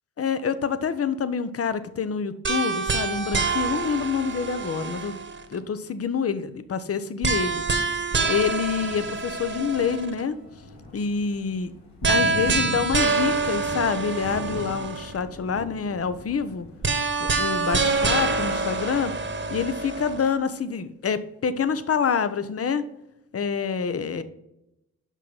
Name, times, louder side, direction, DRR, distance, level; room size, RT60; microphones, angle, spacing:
voice 1, 0.2-5.2 5.5-7.6 8.3-10.4 10.9-11.7 12.1-16.7 17.2-19.1 19.5-22.8 23.3-24.2, left 6 dB, 40° left, 13 dB, 0.8 m, -27 dB
sound 1, 2.4-5.6 7.2-10.2 12.0-15.2 16.8-20.3, right 4 dB, 30° right, 1.3 m, -26 dB
Thunder, 7.3-17.0, left 1 dB, 75° left, 2.7 m, -40 dB
6.0 x 5.6 x 5.5 m, 0.84 s
supercardioid pair, 55°, 37 cm